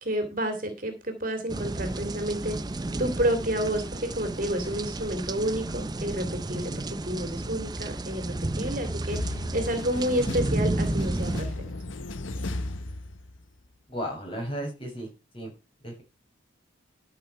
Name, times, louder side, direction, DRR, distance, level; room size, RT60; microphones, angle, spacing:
voice 1, 0.0-2.6 3.0-11.5, right 1 dB, 45° right, 6 dB, 2.6 m, -30 dB
sound 1, 1.5-11.4, right 2 dB, 20° right, 0.5 m, -32 dB
sound 2, 9.1-13.6, left 2 dB, 80° left, 0.9 m, -35 dB
voice 2, 13.9-15.5 15.8-16.0, equal, 25° left, 1 dB, 6.3 m, -35 dB
13.0 x 6.1 x 5.8 m, 0.28 s
head